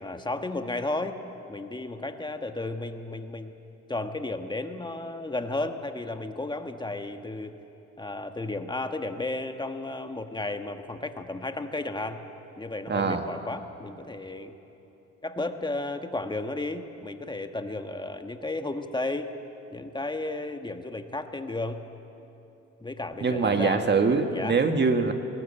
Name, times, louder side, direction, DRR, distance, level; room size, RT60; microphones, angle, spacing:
voice 1, 0.0-1.2 1.5-3.5 3.9-7.5 8.0-12.2 12.6-14.5 15.2-19.3 19.7-21.8 22.8-23.9 24.3-24.6, left 2 dB, 15° left, 7 dB, 1.3 m, -33 dB
voice 2, 12.9-13.2 23.2-25.1, right 4 dB, 35° right, 6 dB, 1.7 m, -23 dB
20.5 x 18.0 x 8.7 m, 2.9 s
cardioid pair, 90°, 30 cm